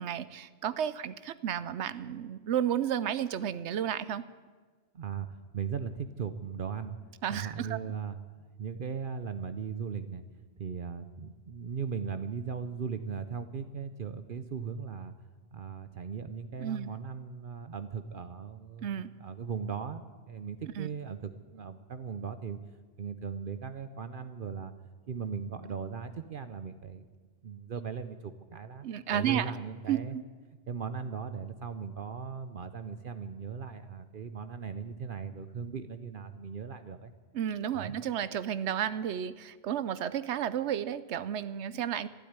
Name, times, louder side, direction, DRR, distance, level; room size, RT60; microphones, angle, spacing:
voice 1, 0.0-4.2 7.2-8.0 16.6-16.9 18.8-19.1 20.8-20.9 28.8-29.5 29.9-30.2 37.3-42.1, right 9 dB, 80° right, 15 dB, 0.9 m, -32 dB
voice 2, 4.9-7.0 7.3-8.2 8.5-10.2 10.6-15.1 15.5-22.6 23.0-24.7 25.1-27.1 27.4-30.2 30.7-37.1 37.7-38.0, right 6 dB, 55° right, 10 dB, 0.8 m, -38 dB
12.5 x 12.0 x 9.6 m, 1.4 s
omnidirectional pair, 1.1 m